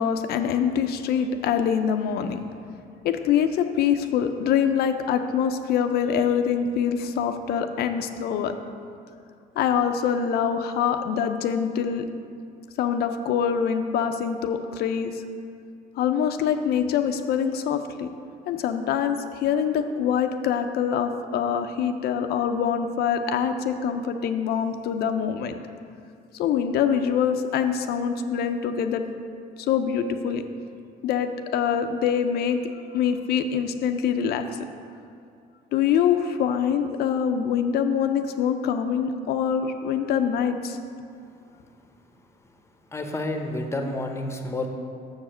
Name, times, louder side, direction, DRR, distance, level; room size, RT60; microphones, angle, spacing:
voice 1, 0.0-2.4 3.0-8.5 9.6-12.0 12.8-15.2 16.0-18.1 18.5-25.6 26.3-29.0 29.6-30.4 31.0-32.6 32.9-34.7 35.7-40.8, left 8 dB, 70° left, 7 dB, 0.5 m, -24 dB
voice 2, 42.9-44.7, left 2 dB, 15° left, 4 dB, 0.8 m, -29 dB
6.7 x 4.9 x 6.2 m, 2.4 s
cardioid pair, 110°, 17 cm